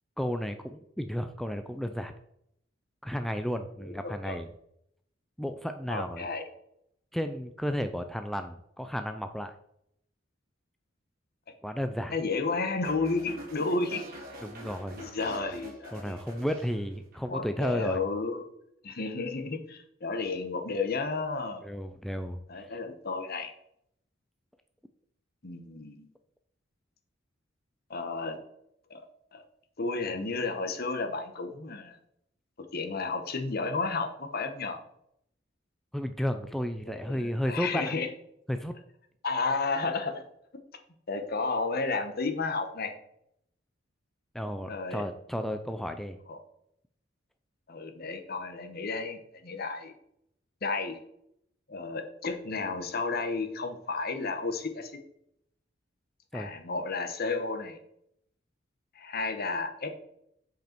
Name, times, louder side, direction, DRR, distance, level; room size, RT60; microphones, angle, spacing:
voice 1, 0.2-2.1 3.0-4.5 5.4-6.3 7.1-9.5 11.6-12.1 14.4-15.0 15.9-18.0 21.6-22.7 35.9-37.9 38.5-38.7 44.3-46.2 56.3-56.5, equal, ahead, 7 dB, 0.3 m, -33 dB
voice 2, 3.8-4.4 5.9-6.4 12.1-14.0 15.0-16.2 17.3-18.5 18.8-21.6 22.5-23.5 25.4-26.1 27.9-28.4 28.9-29.0 29.3-29.4 29.8-32.0 32.7-34.8 36.9-38.1 39.2-40.2 40.5-40.6 41.1-42.9 44.7-45.0 46.3-46.4 47.7-49.9 50.6-51.0 51.7-55.0 56.3-57.8 58.9-59.9, left 3 dB, 50° left, 7 dB, 1.0 m, -32 dB
sound 1, 12.8-17.3 17.6-18.0, equal, 50° right, 2.3 m, -46 dB
7.9 x 5.2 x 4.4 m, 0.74 s
head